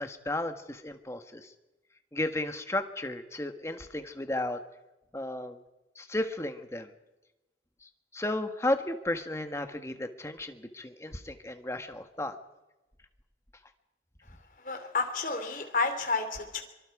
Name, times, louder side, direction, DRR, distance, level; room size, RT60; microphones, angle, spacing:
voice 1, 0.0-1.5 2.1-4.6 5.1-5.6 6.0-6.9 7.8-12.3, left 1 dB, 15° left, 7 dB, 1.4 m, -34 dB
voice 2, 14.6-16.6, left 3 dB, 45° left, 6 dB, 3.1 m, -30 dB
25.0 x 24.5 x 4.9 m, 1.0 s
head